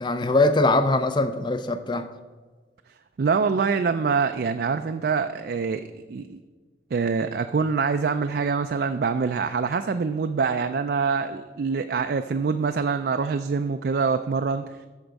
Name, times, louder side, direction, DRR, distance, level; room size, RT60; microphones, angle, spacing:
voice 1, 0.0-2.1, left 2 dB, 25° left, 10 dB, 0.4 m, -22 dB
voice 2, 3.2-5.8 6.1-6.4 6.9-14.7, right 5 dB, 60° right, 8 dB, 0.4 m, -25 dB
13.0 x 4.5 x 5.2 m, 1.4 s
head